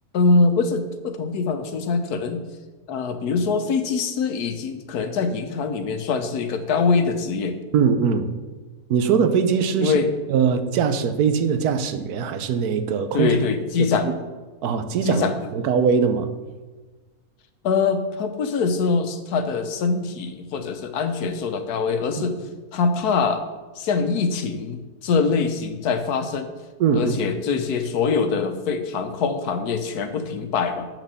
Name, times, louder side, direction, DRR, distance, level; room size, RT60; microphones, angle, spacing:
voice 1, 0.1-2.4 2.9-7.6 9.8-10.1 13.1-14.1 15.0-15.3 17.6-22.4 22.7-23.4 23.8-26.5 26.9-30.9, left 4 dB, 90° left, 9 dB, 1.4 m, -23 dB
voice 2, 7.7-8.3 8.9-9.9 10.3-13.4 13.8-14.1 14.6-15.2 15.5-16.3 22.2-22.3 26.8-27.3, right 6 dB, 90° right, 9 dB, 1.3 m, -21 dB
8.1 x 6.0 x 6.9 m, 1.3 s
omnidirectional pair, 1.6 m